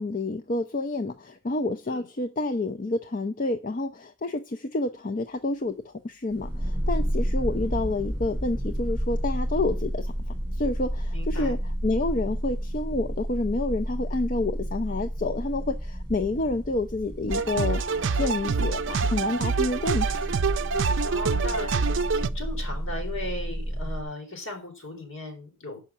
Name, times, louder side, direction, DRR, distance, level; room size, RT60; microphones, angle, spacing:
voice 1, 0.0-10.1 10.6-20.3, left 2 dB, 40° left, 0.5 m, -29 dB
sound 1, 6.3-24.0, equal, 20° right, 2.7 m, -31 dB
voice 2, 11.1-11.5 21.0-25.8, left 1 dB, 65° left, 3.7 m, -37 dB
sound 2, 17.3-22.3, right 4 dB, 60° right, 0.5 m, -26 dB
7.2 x 5.6 x 7.1 m
head